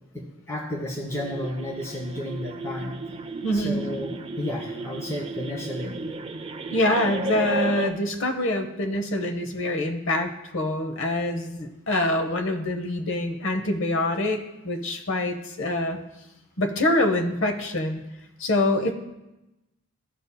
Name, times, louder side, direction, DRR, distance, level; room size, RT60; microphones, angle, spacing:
voice 1, 0.1-2.9 3.5-6.0, left 1 dB, 15° left, -3 dB, 1.2 m, -32 dB
sound 1, 1.1-7.9, right 2 dB, 25° right, 0.3 m, -34 dB
voice 2, 3.4-3.9 6.7-16.0 16.6-18.0 18.4-18.9, left 1 dB, 60° left, 5 dB, 0.8 m, -25 dB
14.0 x 5.3 x 2.2 m, 0.97 s
head